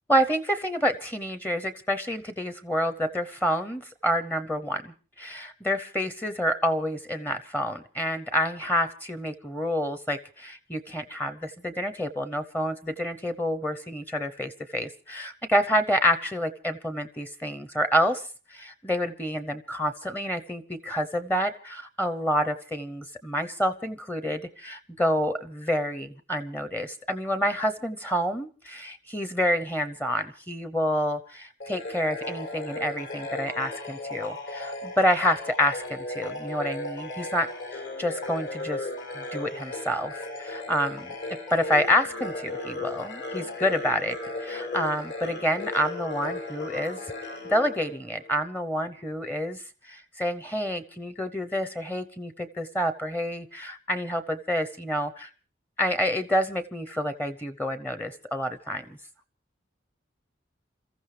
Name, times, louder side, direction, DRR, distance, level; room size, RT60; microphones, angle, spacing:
voice 1, 0.1-4.9 5.2-18.2 18.5-38.8 39.1-41.1 41.5-47.0 47.4-55.3 55.8-58.8, equal, 10° left, 10 dB, 0.8 m, -28 dB
sound 1, 31.6-48.4, left 2 dB, 65° left, 6.4 m, -36 dB
28.0 x 14.5 x 3.3 m, 0.37 s
head